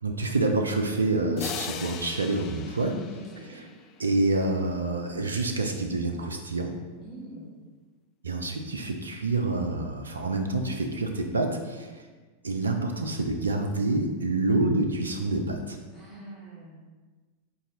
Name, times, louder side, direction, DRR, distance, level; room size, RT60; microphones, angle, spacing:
voice 1, 0.0-3.0 4.0-6.7 8.2-11.9 12.4-15.8, right 2 dB, 75° right, 4 dB, 0.4 m, -27 dB
sound 1, 1.4-4.1, left 7 dB, 35° left, 0.3 m, -39 dB
voice 2, 3.1-3.6 7.0-7.6 15.9-16.8, right 1 dB, 5° left, -7 dB, 1.4 m, -44 dB
3.9 x 2.6 x 3.9 m, 1.3 s
figure-of-eight pair, 90°, 0 cm